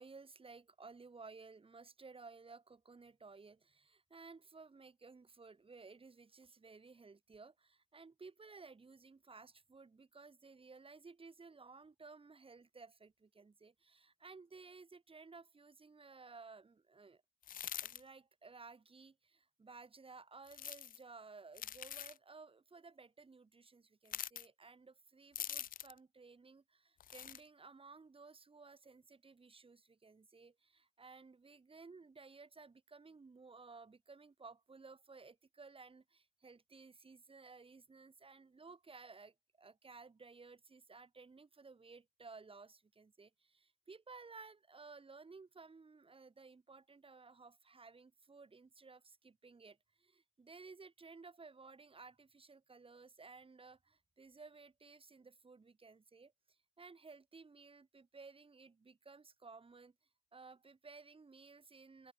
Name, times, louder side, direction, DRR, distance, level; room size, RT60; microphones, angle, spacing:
voice 1, 0.0-17.2 17.8-59.9 60.3-62.1, right 4 dB, 30° right, 3.4 m, -57 dB
sound 1, 17.4-18.0 20.5-21.0 21.5-22.2 24.1-24.5 25.4-26.0 27.0-27.4, left 10 dB, 45° left, 0.4 m, -44 dB
cardioid pair, 90°, 20 cm